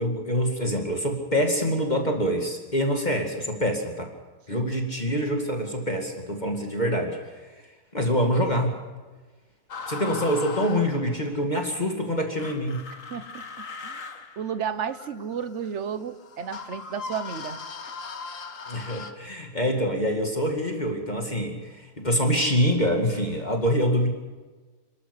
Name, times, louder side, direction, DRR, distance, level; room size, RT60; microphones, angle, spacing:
voice 1, 0.0-4.1 4.5-7.2 7.5-7.6 7.9-8.7 9.9-12.8 18.7-24.1, equal, 25° left, 2 dB, 2.3 m, -25 dB
sound 1, 9.7-11.4 12.4-19.1, left 5 dB, 55° left, 1.6 m, -38 dB
voice 2, 13.1-13.4 13.8-14.0 14.4-17.9, right 7 dB, 50° right, 12 dB, 1.2 m, -33 dB
28.0 x 12.5 x 8.1 m, 1.3 s
omnidirectional pair, 1.7 m